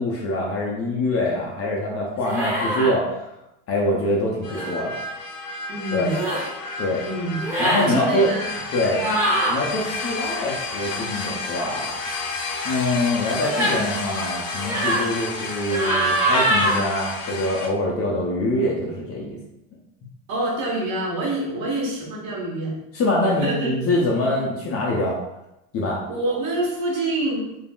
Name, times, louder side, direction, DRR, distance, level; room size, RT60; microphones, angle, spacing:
voice 1, 0.0-3.1 3.7-5.0 5.9-6.1 6.8-7.0 7.6-8.3 8.7-9.0 9.5-11.9 12.6-19.4 22.9-25.2 25.7-26.0, left 1 dB, 30° left, -3 dB, 0.5 m, -24 dB
sound 1, 2.2-2.9 4.5-4.7 6.0-6.5 7.4-7.9 8.9-9.5 13.5-13.8 14.6-15.1 15.7-16.8, right 1 dB, 5° right, 0.9 m, -23 dB
sound 2, 4.4-17.7, left 3 dB, 80° left, 0.6 m, -31 dB
voice 2, 5.7-6.1 7.0-7.4 7.7-8.6 9.0-9.2 20.3-22.8 23.4-23.7 26.1-27.5, right 1 dB, 45° right, -3 dB, 1.1 m, -26 dB
2.4 x 2.0 x 3.5 m, 0.90 s
supercardioid pair, 110°, 45 cm